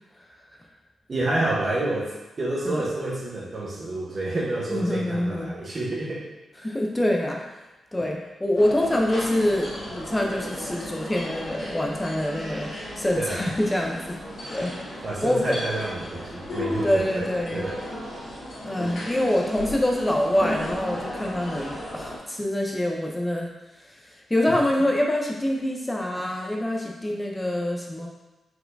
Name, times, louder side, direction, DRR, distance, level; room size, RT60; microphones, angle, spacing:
voice 1, 1.1-2.1 2.4-6.2 13.1-13.5 15.0-17.8, right 2 dB, 35° right, -3 dB, 0.9 m, -29 dB
voice 2, 4.7-5.5 6.6-7.4 7.9-12.7 13.0-14.2 14.5-14.7 15.2-15.6 16.8-17.6 18.6-23.5 24.3-28.1, left 1 dB, 10° left, 0 dB, 0.5 m, -25 dB
sound 1, 8.5-22.2, left 1 dB, 70° left, 1.5 m, -35 dB
4.6 x 4.1 x 2.6 m, 1.1 s
wide cardioid pair, 165°, 0 cm